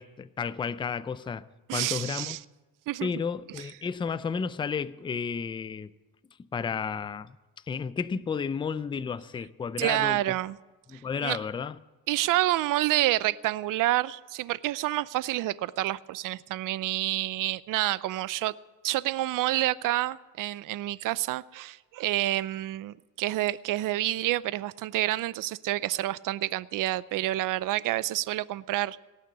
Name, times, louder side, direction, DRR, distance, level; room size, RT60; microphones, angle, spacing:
voice 1, 0.0-1.5 1.7-2.4 3.0-5.9 6.5-7.4 7.7-10.2 10.9-11.8, left 6 dB, 15° left, 0.4 m, -32 dB
voice 2, 1.7-2.4 2.9-3.1 3.6-3.7 9.8-10.6 11.2-11.4 12.1-18.5 18.8-29.0, right 16 dB, 55° right, 0.6 m, -28 dB
18.0 x 6.6 x 9.6 m
cardioid pair, 120°, 38 cm